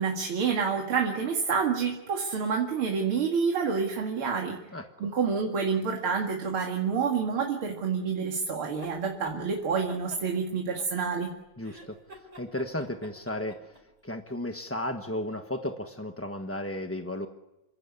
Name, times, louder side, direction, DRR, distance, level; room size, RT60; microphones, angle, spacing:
voice 1, 0.0-4.6 5.0-11.3, right 5 dB, 80° right, 2 dB, 3.0 m, -28 dB
voice 2, 4.7-5.1 11.6-17.3, left 1 dB, 10° left, 5 dB, 0.7 m, -35 dB
sound 1, 8.6-9.4 9.9-11.3 11.6-13.8, right 1 dB, 30° right, 5.6 m, -47 dB
27.5 x 16.0 x 9.7 m, 1.0 s
omnidirectional pair, 2.3 m